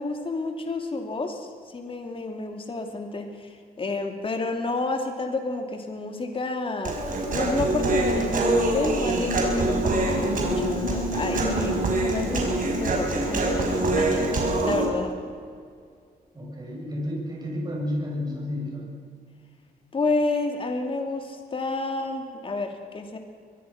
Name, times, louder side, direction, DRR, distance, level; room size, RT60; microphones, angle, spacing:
voice 1, 0.0-7.0 7.3-15.2 19.9-23.2, left 3 dB, 35° left, 4 dB, 2.7 m, -30 dB
Human voice, 6.8-14.9, right 2 dB, 55° right, 5.7 m, -24 dB
voice 2, 16.3-18.9, left 1 dB, 25° right, -3 dB, 7.7 m, -31 dB
24.5 x 21.0 x 5.9 m, 2.2 s
cardioid pair, 120°, 16 cm